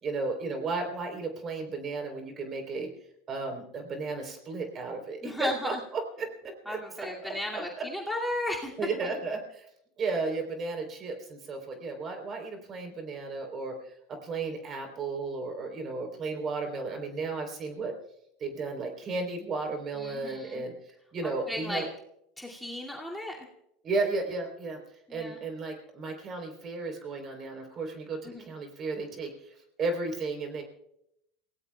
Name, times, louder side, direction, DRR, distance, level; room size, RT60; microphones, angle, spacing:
voice 1, 0.0-2.9 3.3-7.1 8.8-9.7 10.0-13.9 14.2-17.9 18.4-20.7 21.1-21.9 23.8-24.8 25.1-30.6, right 3 dB, 40° right, 4 dB, 3.6 m, -34 dB
voice 2, 5.2-5.8 6.7-8.7 9.0-9.1 20.0-20.6 21.5-21.8 22.4-23.5 25.1-25.4 28.2-28.5, left 1 dB, ahead, -3 dB, 2.4 m, -35 dB
29.5 x 17.5 x 2.3 m, 0.79 s
hypercardioid pair, 95°, 0 cm